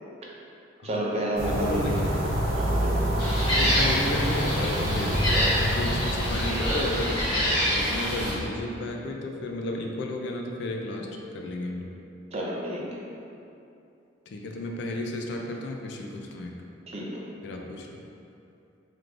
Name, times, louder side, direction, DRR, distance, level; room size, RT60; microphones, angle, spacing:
voice 1, 0.8-2.0 2.6-3.0 12.3-13.0 16.9-17.2, right 1 dB, 35° right, -4 dB, 0.5 m, -30 dB
voice 2, 1.4-2.2 3.2-5.3 5.6-7.3 7.7-11.9 14.3-16.6 17.4-18.0, left 2 dB, 60° left, 2 dB, 0.3 m, -33 dB
sound 1, 1.4-7.8, equal, 90° right, 0.7 m, -28 dB
Gull seagull, 3.2-8.3, equal, 20° left, 1.0 m, -26 dB
3.5 x 3.2 x 2.4 m, 2.7 s
head